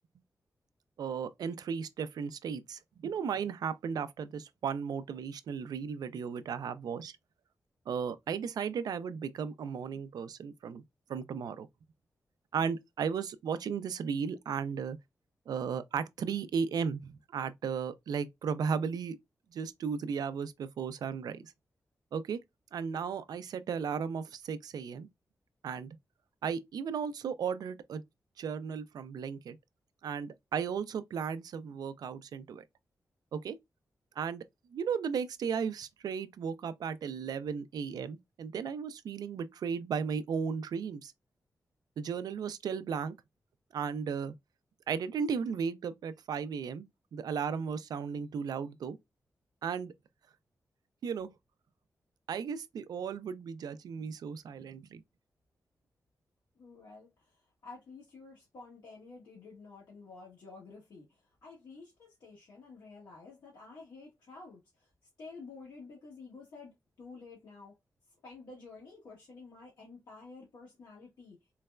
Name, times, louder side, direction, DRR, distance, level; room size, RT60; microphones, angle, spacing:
voice 1, 1.0-7.1 7.9-10.8 11.1-11.7 12.5-15.0 15.5-19.2 19.5-21.5 22.1-22.4 22.7-25.1 25.6-25.9 26.4-28.0 28.4-29.6 30.0-32.6 33.3-33.6 34.2-34.4 34.7-41.1 42.0-43.1 43.7-44.3 44.9-46.9 47.1-49.0 49.6-49.9 51.0-51.3 52.3-55.0, right 6 dB, 90° right, 0.4 m, -35 dB
voice 2, 56.6-64.9 65.2-67.7 68.2-71.4, left 4 dB, 85° left, 1.3 m, -51 dB
3.9 x 2.1 x 2.2 m
wide cardioid pair, 110°, 7 cm